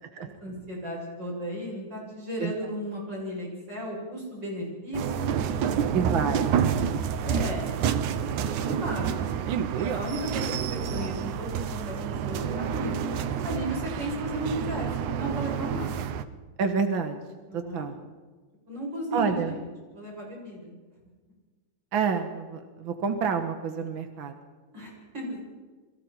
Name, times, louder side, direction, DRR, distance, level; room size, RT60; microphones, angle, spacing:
voice 1, 0.1-5.9 7.2-7.7 8.3-9.3 9.7-13.1 13.4-14.9 15.1-16.0 17.5-17.9 18.7-19.7 19.9-20.7 24.7-25.4, equal, 30° right, -3 dB, 8.5 m, -35 dB
sound 1, 4.9-16.2, right 8 dB, 70° right, 2.3 m, -29 dB
voice 2, 5.9-6.9 7.2-7.5 8.6-9.0 16.6-17.2 17.5-17.9 19.1-19.5 21.9-24.4, right 6 dB, 55° right, 6 dB, 1.5 m, -29 dB
29.5 x 23.0 x 4.5 m, 1.4 s
omnidirectional pair, 4.0 m